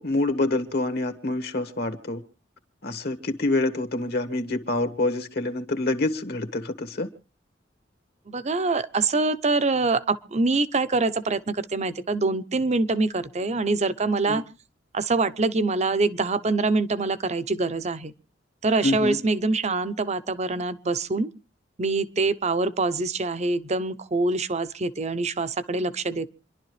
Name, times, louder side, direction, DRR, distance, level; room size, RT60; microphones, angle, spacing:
voice 1, 0.0-2.2 2.8-7.1 14.3-14.4 18.8-19.2, left 2 dB, 60° left, 1.7 m, -26 dB
voice 2, 8.3-14.4 14.9-18.1 18.6-21.3 21.8-26.3, right 3 dB, 40° right, 0.8 m, -25 dB
28.0 x 11.5 x 3.2 m
head